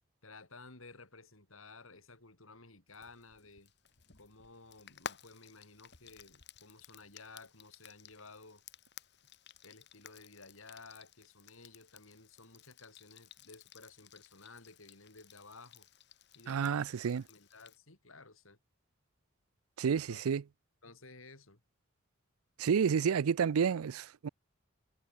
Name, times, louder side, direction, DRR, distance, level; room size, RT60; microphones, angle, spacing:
voice 1, 0.2-3.7 4.1-8.6 9.6-15.9 16.3-16.8 17.3-18.6 20.1-20.2 20.8-21.6, left 3 dB, 75° left, 4.3 m, -55 dB
Frying (food), 2.9-17.8, left 6 dB, 50° left, 1.9 m, -54 dB
voice 2, 16.5-17.2 19.8-20.4 22.6-24.3, right 7 dB, 90° right, 0.4 m, -30 dB
head